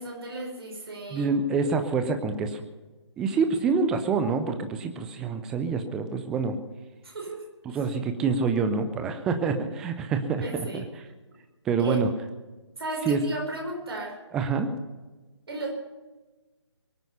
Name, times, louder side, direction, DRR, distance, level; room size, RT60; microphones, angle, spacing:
voice 1, 0.0-1.3 7.0-7.8 10.4-10.8 11.8-12.0 12.8-14.2 15.5-15.7, right 2 dB, 55° right, 1 dB, 4.9 m, -35 dB
voice 2, 1.1-2.6 3.2-6.6 7.7-10.8 11.7-12.1 13.1-13.2 14.3-14.7, right 5 dB, 5° right, 8 dB, 0.4 m, -26 dB
23.0 x 9.1 x 5.5 m, 1.2 s
figure-of-eight pair, 145°, 15 cm